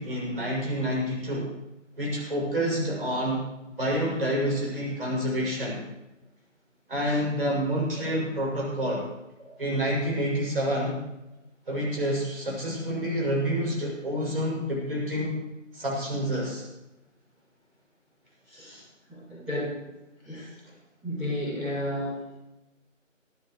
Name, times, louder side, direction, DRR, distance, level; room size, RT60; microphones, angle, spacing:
voice 1, 0.0-1.5 2.0-3.4 3.8-5.8 6.9-9.1 9.6-11.0 11.7-15.4 15.7-16.6 18.7-18.8, equal, 45° right, -4 dB, 7.0 m, -28 dB
voice 2, 18.5-18.8 19.1-19.8 20.2-20.5 21.0-22.4, left 1 dB, 5° right, -16 dB, 2.6 m, -33 dB
25.0 x 13.5 x 3.2 m, 0.93 s
figure-of-eight pair, 175°, 39 cm